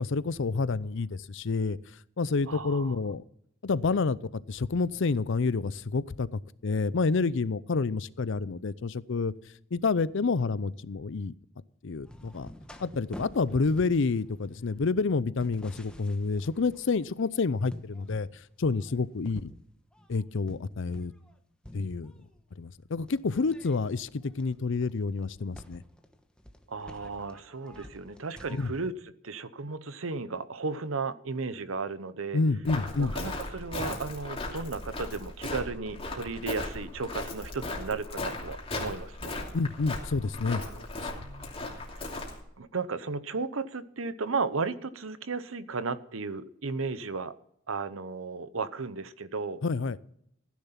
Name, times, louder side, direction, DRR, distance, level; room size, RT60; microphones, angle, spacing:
voice 1, 0.0-1.8 2.2-3.2 3.6-4.2 4.5-9.3 9.7-11.3 11.8-12.5 12.8-18.3 18.6-19.5 20.1-21.1 21.7-22.1 22.6-25.8 28.6-28.7 32.3-33.1 39.5-40.6 41.0-41.1 49.6-50.0, left 4 dB, 65° left, 18 dB, 0.6 m, -28 dB
voice 2, 2.5-3.0 26.7-32.4 33.0-39.3 40.7-40.9 41.2-47.3 47.7-49.6, right 4 dB, 85° right, 14 dB, 0.9 m, -35 dB
sound 1, 12.0-17.3 17.7-18.3 18.7-21.4 21.6-22.4 23.0-28.9, left 1 dB, 5° left, 1.2 m, -49 dB
Walk footsteps, 32.6-42.4, left 2 dB, 30° left, 2.8 m, -37 dB
15.5 x 10.5 x 5.8 m, 0.73 s
head